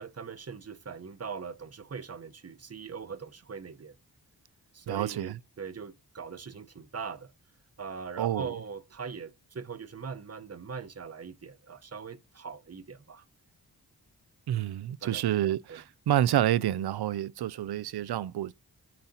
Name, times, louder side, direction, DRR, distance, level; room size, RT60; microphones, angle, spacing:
voice 1, 0.0-4.0 4.7-7.3 7.8-13.2 15.0-15.8, right 5 dB, 40° right, 0.9 m, -41 dB
voice 2, 4.9-5.4 8.2-8.5 14.5-18.5, right 12 dB, 75° right, 0.5 m, -28 dB
11.5 x 4.1 x 2.8 m
cardioid pair, 65°, 39 cm